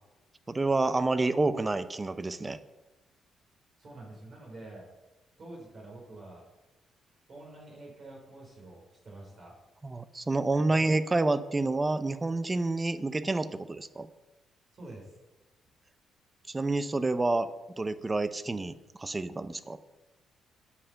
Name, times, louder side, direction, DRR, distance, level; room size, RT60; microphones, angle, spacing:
voice 1, 0.5-2.6 9.8-14.1 16.5-17.5 17.8-19.8, right 2 dB, 20° right, 14 dB, 0.6 m, -28 dB
voice 2, 3.8-4.9 5.4-6.4 7.3-9.6 10.7-10.9 14.7-15.1, right 2 dB, 45° right, -2 dB, 3.4 m, -47 dB
9.7 x 5.7 x 6.7 m, 1.1 s
cardioid pair, 90°, 0 cm